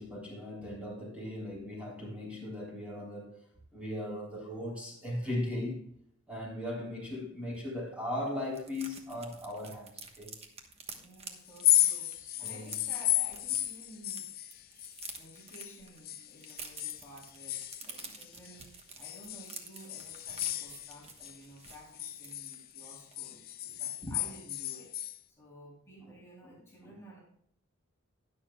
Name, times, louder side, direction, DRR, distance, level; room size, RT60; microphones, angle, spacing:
voice 1, 0.0-3.4 3.7-5.9 6.3-10.3 12.2-12.7 18.0-18.1 23.7-24.1 26.0-26.1 26.4-26.9, left 1 dB, 5° right, 3.4 m, -38 dB
sound 1, 7.5-7.6 7.9-8.0 8.2-14.2 14.5-22.7 23.1-23.3 23.5-23.8, right 5 dB, 30° right, 1.2 m, -49 dB
voice 2, 10.9-14.3 15.1-24.9 25.3-27.2, right 1 dB, 15° left, 3.1 m, -53 dB
sound 2, 11.5-15.7 16.0-18.6 19.0-21.4 21.7-25.2, left 14 dB, 45° left, 0.6 m, -33 dB
20.0 x 6.9 x 2.3 m
head